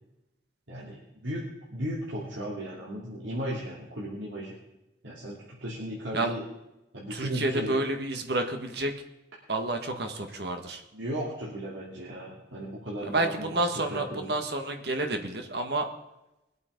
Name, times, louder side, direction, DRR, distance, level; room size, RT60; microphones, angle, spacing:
voice 1, 0.7-1.4 1.7-4.6 5.0-6.4 6.9-7.8 10.9-13.6 13.9-14.3, equal, 90° right, -6 dB, 3.0 m, -35 dB
voice 2, 7.1-8.9 9.5-10.8 13.0-15.9, right 2 dB, 60° right, 5 dB, 1.6 m, -29 dB
21.0 x 8.5 x 5.2 m, 0.94 s
head